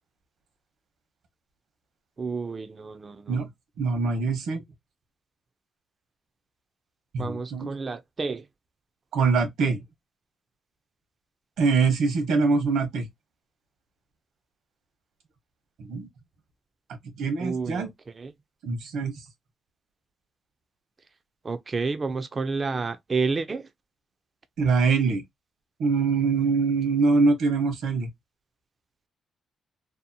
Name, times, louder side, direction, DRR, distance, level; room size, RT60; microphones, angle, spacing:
voice 1, 2.2-3.4 7.2-8.5 17.4-17.9 18.1-18.3 21.4-23.7, right 4 dB, 35° right, 0.3 m, -30 dB
voice 2, 3.8-4.6 7.1-7.7 9.1-9.8 11.6-13.1 15.8-16.1 17.2-17.9 18.6-19.1 24.6-25.2 25.8-28.1, right 4 dB, 80° right, 0.9 m, -23 dB
2.7 x 2.1 x 2.6 m
cardioid pair, 90°, 0 cm